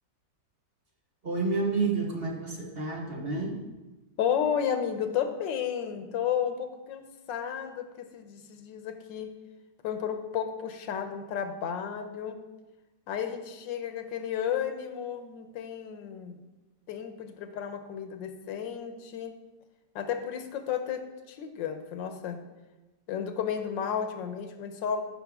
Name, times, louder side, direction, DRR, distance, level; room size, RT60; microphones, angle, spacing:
voice 1, 1.2-3.6, right 3 dB, 35° right, -1 dB, 1.3 m, -29 dB
voice 2, 4.2-9.3 9.8-12.4 13.1-16.4 16.9-19.3 19.9-22.4 23.1-25.0, left 8 dB, 90° left, 7 dB, 1.5 m, -32 dB
14.0 x 5.6 x 3.6 m, 1.1 s
omnidirectional pair, 2.0 m